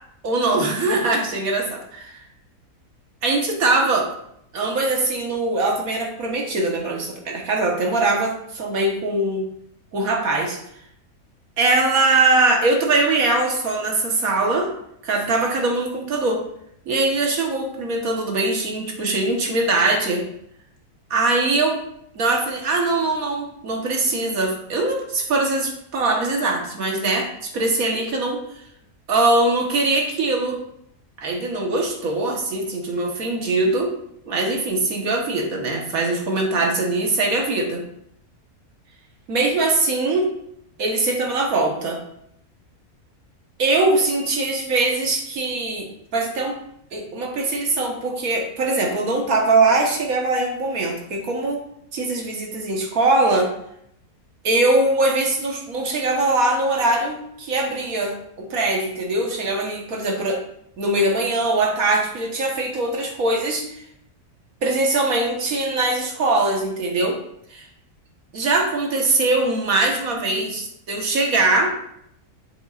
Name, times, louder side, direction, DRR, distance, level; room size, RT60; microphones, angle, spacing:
voice 1, 0.2-1.8 3.2-4.1 4.5-9.5 9.9-10.6 11.6-14.7 15.0-16.4 16.9-20.2 21.1-21.8 22.1-28.4 29.1-30.6 31.2-33.9 34.3-37.8 39.3-40.3 40.8-42.0 43.6-46.6 46.9-51.6 51.9-53.5 54.4-60.4 60.8-63.8 64.6-67.2 67.5-67.7 68.3-71.7, right 2 dB, 60° right, 1 dB, 1.7 m, -22 dB
7.6 x 7.1 x 2.5 m, 0.74 s
omnidirectional pair, 1.7 m